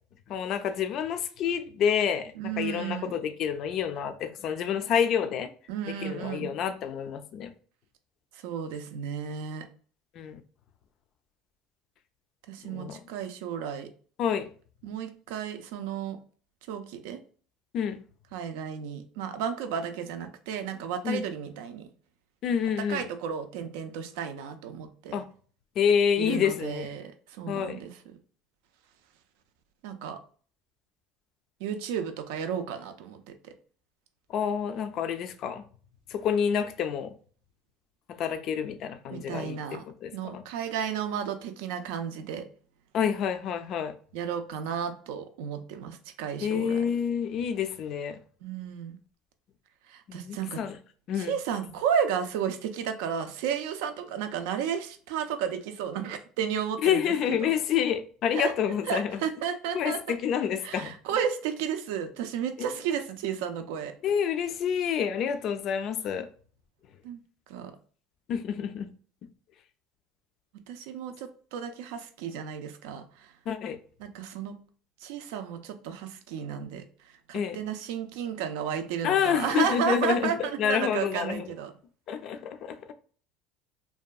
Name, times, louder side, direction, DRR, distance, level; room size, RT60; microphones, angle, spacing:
voice 1, 0.3-5.5 5.9-7.5 10.1-10.4 12.6-13.0 14.2-14.5 17.7-18.0 21.0-21.2 22.4-23.0 25.1-25.2 25.8-26.9 27.5-27.8 34.3-35.6 36.1-37.1 38.2-40.4 42.9-43.9 46.4-48.2 50.1-50.8 51.1-51.4 56.8-59.2 59.7-61.0 62.6-62.7 64.0-66.3 68.3-68.9 73.5-73.8 77.3-77.6 79.0-81.5 82.1-82.8, left 8 dB, 50° left, 0.3 m, -28 dB
voice 2, 2.4-3.1 5.7-6.6 8.3-9.7 12.5-13.9 14.8-16.2 16.7-17.2 18.3-21.9 22.9-25.2 26.2-27.9 29.8-30.2 31.6-33.5 39.1-39.8 40.1-42.4 44.1-46.8 48.4-49.0 49.9-50.6 51.2-57.5 58.3-58.5 58.9-60.2 60.6-63.9 67.0-67.2 67.5-67.7 70.7-73.3 74.0-74.6 75.0-81.7, right 7 dB, 85° right, 0.4 m, -33 dB
2.6 x 2.3 x 2.2 m
cardioid pair, 130°, 0 cm